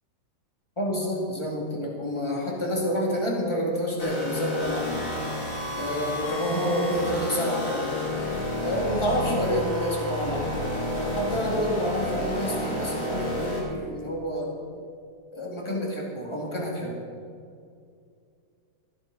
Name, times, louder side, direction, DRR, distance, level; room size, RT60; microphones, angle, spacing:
voice 1, 0.8-5.1 5.7-8.0 8.6-10.6 10.9-14.6 15.3-17.0, equal, 15° left, -2 dB, 2.3 m, -28 dB
sound 1, 4.0-13.6, left 1 dB, 45° left, 2.8 m, -30 dB
14.5 x 12.0 x 4.1 m, 2.4 s
omnidirectional pair, 2.1 m